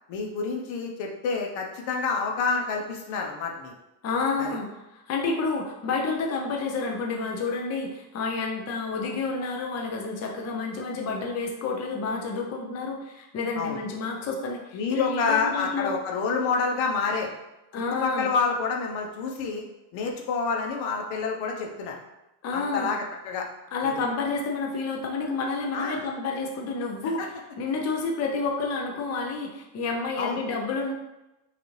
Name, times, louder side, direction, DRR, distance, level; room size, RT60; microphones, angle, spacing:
voice 1, 0.1-3.7 4.4-4.6 13.6-13.8 14.7-17.3 18.0-19.6 19.9-22.0 22.5-23.5 23.8-23.9 25.7-26.0 27.2-27.3 30.2-30.4, left 4 dB, 80° left, 1 dB, 1.0 m, -28 dB
voice 2, 4.0-15.9 17.7-18.3 22.4-22.9 23.7-27.3 27.6-30.9, left 4 dB, 35° left, 0 dB, 0.6 m, -29 dB
5.8 x 2.6 x 3.2 m, 0.95 s
cardioid pair, 150°, 45 cm